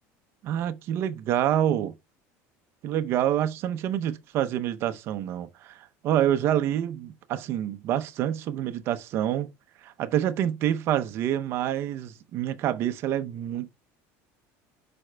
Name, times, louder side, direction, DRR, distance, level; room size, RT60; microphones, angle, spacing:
voice 1, 0.4-1.9 2.8-9.5 9.8-13.7, right 11 dB, 40° right, 0.6 m, -27 dB
11.5 x 4.3 x 2.2 m
cardioid pair, 175°, 6 cm